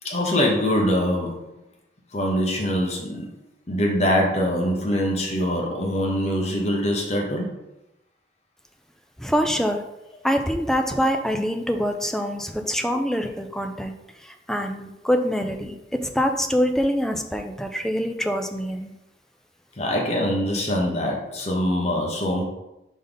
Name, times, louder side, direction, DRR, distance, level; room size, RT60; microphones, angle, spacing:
voice 1, 0.0-1.4 2.1-3.3 3.7-7.5 19.8-22.4, equal, 35° left, 0 dB, 1.1 m, -23 dB
voice 2, 9.2-9.8 10.2-13.9 14.2-18.9, equal, 5° left, 5 dB, 0.5 m, -25 dB
5.2 x 4.0 x 5.2 m, 0.92 s
head